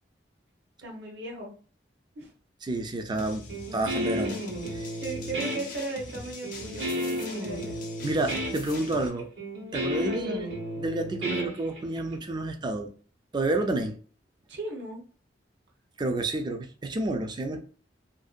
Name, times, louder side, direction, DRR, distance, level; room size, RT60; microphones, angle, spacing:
voice 1, 0.8-1.6 2.2-2.3 5.0-7.8 9.9-10.4 14.5-15.0, right 2 dB, 70° right, 0.8 m, -37 dB
voice 2, 2.6-4.4 4.7-5.0 8.0-9.3 9.7-10.5 10.8-12.9 13.3-14.0 16.0-17.6, right 2 dB, 25° right, 0.3 m, -30 dB
sound 1, 3.2-9.1, left 3 dB, 50° left, 0.5 m, -43 dB
Guitar, 3.5-12.1, equal, 85° right, 1.2 m, -33 dB
2.6 x 2.1 x 2.4 m
head